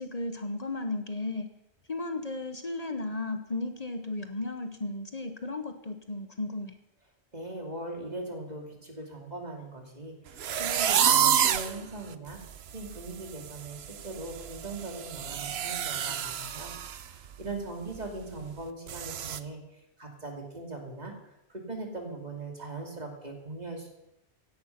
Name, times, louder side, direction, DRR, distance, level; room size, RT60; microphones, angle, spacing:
voice 1, 0.0-1.5 1.9-6.7, left 2 dB, 40° left, 7 dB, 1.1 m, -34 dB
voice 2, 7.3-12.4 12.7-16.7 17.0-19.6 20.0-21.1 21.5-23.9, right 2 dB, 40° right, 2 dB, 2.8 m, -40 dB
sound 1, 10.4-11.7 12.3-12.4 12.8-13.1 13.3-17.0 17.3-17.5 17.9-18.0 18.9-19.4, right 9 dB, 70° right, 1.0 m, -28 dB
16.5 x 11.0 x 5.8 m, 0.86 s
omnidirectional pair, 1.1 m